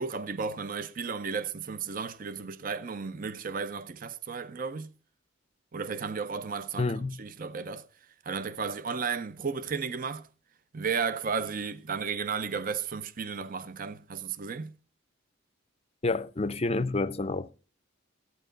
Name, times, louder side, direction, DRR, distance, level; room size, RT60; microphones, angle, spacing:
voice 1, 0.0-4.9 5.7-6.9 7.2-10.3 10.7-14.8, right 5 dB, 40° right, 0.6 m, -34 dB
voice 2, 6.8-7.2 16.0-17.5, left 3 dB, 30° left, 0.5 m, -29 dB
14.0 x 9.1 x 3.8 m
head